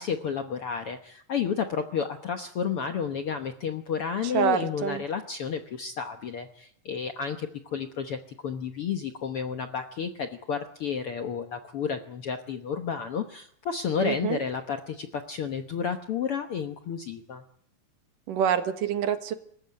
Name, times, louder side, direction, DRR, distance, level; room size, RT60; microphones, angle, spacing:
voice 1, 0.0-17.4, left 6 dB, 65° left, 6 dB, 1.4 m, -31 dB
voice 2, 4.2-5.0 14.0-14.4 18.3-19.3, right 9 dB, 70° right, 8 dB, 3.1 m, -27 dB
25.5 x 14.5 x 9.5 m, 0.66 s
omnidirectional pair, 4.0 m